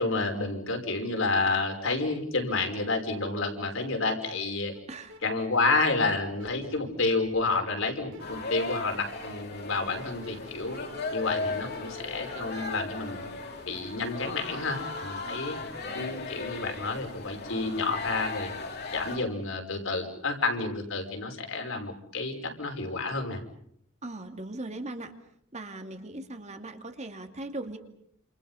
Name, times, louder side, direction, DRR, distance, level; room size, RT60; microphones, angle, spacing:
voice 1, 0.0-4.7 5.2-10.8 11.1-13.2 13.6-15.6 15.9-18.5 18.9-23.4, left 3 dB, 70° left, 3 dB, 5.6 m, -30 dB
sound 1, 4.7-4.8 5.0-6.9 7.2-8.2 8.6-15.0, left 2 dB, 65° right, 6.0 m, -48 dB
sound 2, 8.2-19.2, left 3 dB, 55° left, 3.2 m, -37 dB
voice 2, 24.0-25.1 25.5-27.8, right 2 dB, 35° right, 6 dB, 2.6 m, -39 dB
29.0 x 28.0 x 5.7 m, 0.68 s
head